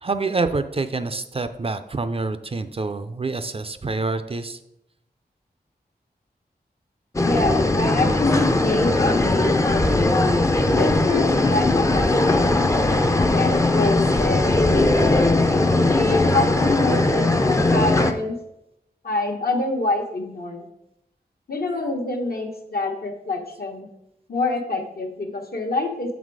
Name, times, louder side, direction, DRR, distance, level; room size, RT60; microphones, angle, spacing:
voice 1, 0.0-4.6, right 3 dB, 35° right, 10 dB, 0.4 m, -27 dB
voice 2, 7.2-10.4 10.8-12.5 13.3-15.0 15.9-17.3 17.7-18.4 19.0-20.7 21.5-23.9 24.3-26.1, left 2 dB, 70° left, 2 dB, 1.2 m, -26 dB
sound 1, 7.2-18.1, left 2 dB, 20° left, 0.5 m, -19 dB
7.1 x 4.1 x 4.7 m, 0.82 s
wide cardioid pair, 85°, 17 cm